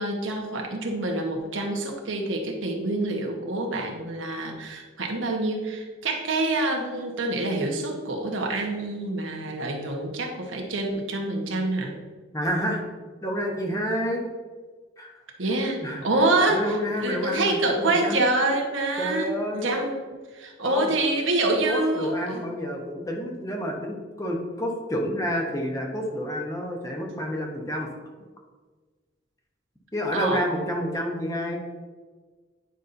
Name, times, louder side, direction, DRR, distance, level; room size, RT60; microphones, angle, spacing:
voice 1, 0.0-11.9 15.4-20.0 20.3-22.4 30.1-30.4, right 2 dB, 85° right, 2 dB, 1.2 m, -26 dB
voice 2, 12.3-12.8 13.2-14.2 15.0-15.2 15.8-18.2 19.0-19.8 20.6-20.9 21.6-27.9 29.9-31.8, equal, 15° left, 1 dB, 0.9 m, -29 dB
9.2 x 5.4 x 2.6 m, 1.4 s
head